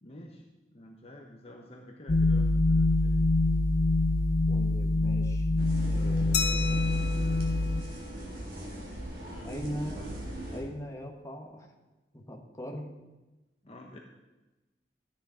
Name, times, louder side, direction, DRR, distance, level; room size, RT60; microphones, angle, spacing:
voice 1, 0.0-3.1 9.3-9.6 13.6-14.0, left 1 dB, 35° left, 1 dB, 1.2 m, -49 dB
sound 1, 2.1-7.8, left 2 dB, 55° left, 0.7 m, -25 dB
voice 2, 4.5-5.5 5.9-6.9 9.4-10.0 10.5-11.7 12.1-12.9, equal, 15° left, 1 dB, 1.6 m, -40 dB
sound 2, 5.6-10.6, right 1 dB, 55° right, 3.6 m, -40 dB
Glass, 6.3-8.8, left 6 dB, 70° left, 1.2 m, -35 dB
14.0 x 9.5 x 5.1 m, 1.1 s
head